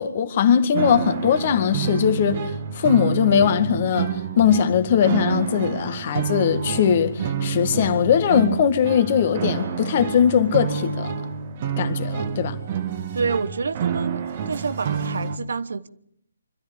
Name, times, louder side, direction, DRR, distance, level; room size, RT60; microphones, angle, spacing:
voice 1, 0.0-2.4 2.7-11.1 11.8-12.6, left 8 dB, 40° left, 1.9 m, -20 dB
sound 1, 0.7-15.4, right 7 dB, 35° right, 1.8 m, -28 dB
voice 2, 13.1-15.9, right 5 dB, 60° right, 1.1 m, -28 dB
25.5 x 13.0 x 8.5 m
figure-of-eight pair, 140°, 0 cm